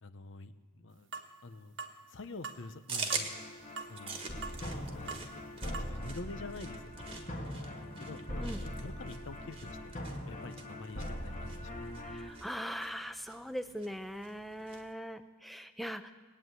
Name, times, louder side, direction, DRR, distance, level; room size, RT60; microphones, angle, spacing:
voice 1, 0.0-1.1 1.4-1.8 2.1-3.3 3.9-4.2 4.9-6.8 8.0-9.9 10.2-12.0, left 3 dB, 65° left, 11 dB, 0.8 m, -47 dB
sound 1, 1.1-1.3 1.8-2.0 2.4-2.6 3.1-3.3 3.8-3.9 4.4-4.6 5.1-5.3 5.7-5.9, right 4 dB, 65° right, 1.2 m, -42 dB
sound 2, 2.9-14.9, right 4 dB, 25° right, 1.4 m, -45 dB
sound 3, 3.1-12.3, equal, 40° left, 1.7 m, -42 dB
voice 2, 12.1-16.1, equal, ahead, 9 dB, 0.6 m, -41 dB
19.5 x 9.2 x 8.1 m, 1.4 s
head